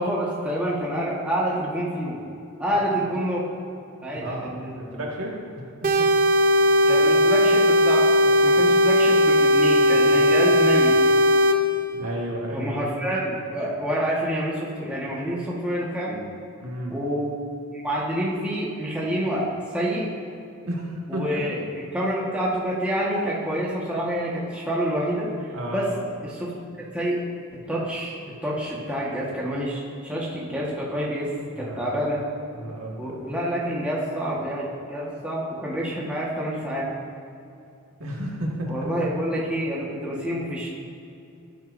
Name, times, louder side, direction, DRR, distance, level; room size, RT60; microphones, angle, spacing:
voice 1, 0.0-2.1 2.6-3.4 4.0-5.0 6.9-10.9 12.5-16.2 16.9-17.3 17.7-19.5 19.7-20.1 21.1-21.6 21.9-25.3 25.7-25.9 26.2-26.5 26.9-27.2 27.7-28.1 28.4-31.3 31.6-32.2 33.0-36.9 38.7-40.7, equal, 5° right, -6 dB, 1.5 m, -27 dB
voice 2, 4.2-4.5 4.9-5.3 6.0-6.1 11.9-12.7 16.6-17.0 20.7-21.3 25.5-25.9 31.6-31.9 32.5-33.2 38.0-38.9, right 1 dB, 65° right, -2 dB, 1.9 m, -32 dB
sound 1, 5.8-11.6, left 1 dB, 40° right, 0.7 m, -18 dB
16.0 x 9.2 x 2.7 m, 2.5 s
head